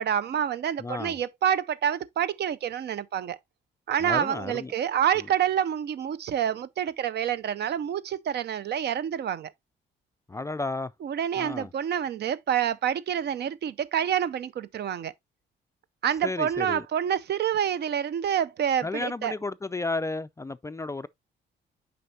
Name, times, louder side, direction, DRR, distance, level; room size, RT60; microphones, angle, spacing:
voice 1, 0.0-3.4 3.9-9.5 11.0-15.1 16.0-19.3, right 9 dB, 55° right, 0.6 m, -27 dB
voice 2, 0.8-1.2 4.0-4.7 10.3-10.9 11.4-11.7 16.2-16.9 18.8-21.1, left 3 dB, 15° left, 0.3 m, -32 dB
7.8 x 5.3 x 2.7 m
cardioid pair, 90°, 20 cm